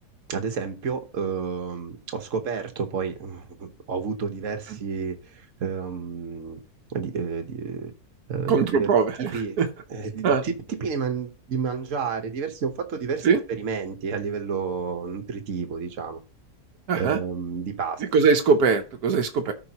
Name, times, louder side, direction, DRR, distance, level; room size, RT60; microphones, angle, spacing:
voice 1, 0.3-6.6 6.9-7.9 8.3-8.9 9.2-9.6 9.9-16.2 17.0-18.0, right 5 dB, 55° right, 1.5 m, -30 dB
voice 2, 8.5-9.7 10.2-10.4 13.2-13.4 16.9-17.2 18.1-19.5, right 5 dB, 70° right, 1.4 m, -21 dB
13.5 x 5.1 x 2.9 m
omnidirectional pair, 1.7 m